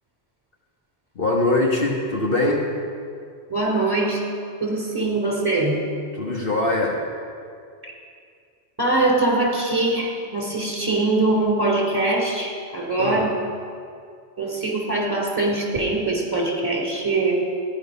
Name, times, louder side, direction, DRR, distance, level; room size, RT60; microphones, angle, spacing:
voice 1, 1.1-2.7 6.2-7.0 13.0-13.3, left 2 dB, 55° left, -1 dB, 1.5 m, -22 dB
voice 2, 3.5-4.2 4.6-5.8 7.8-7.9 8.8-13.4 14.4-17.4, right 2 dB, 20° right, -3 dB, 3.3 m, -22 dB
15.0 x 10.5 x 5.6 m, 2.3 s
omnidirectional pair, 1.2 m